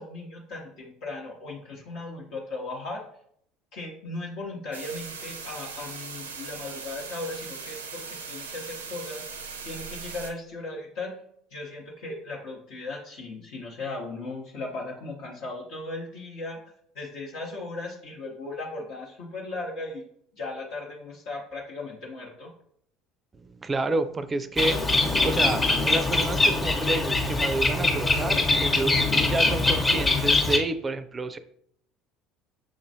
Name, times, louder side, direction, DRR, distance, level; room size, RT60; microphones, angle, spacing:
voice 1, 0.0-3.0 3.7-11.2 11.5-16.6 16.9-20.0 20.3-22.5, left 2 dB, 60° left, -3 dB, 0.9 m, -37 dB
sound 1, 4.7-10.3, right 5 dB, 85° right, 0.4 m, -39 dB
voice 2, 23.3-31.4, right 2 dB, 25° right, 12 dB, 0.4 m, -30 dB
Bird, 24.6-30.6, left 2 dB, 25° left, 0.9 m, -23 dB
6.2 x 3.0 x 2.7 m, 0.68 s
hypercardioid pair, 65°, 0 cm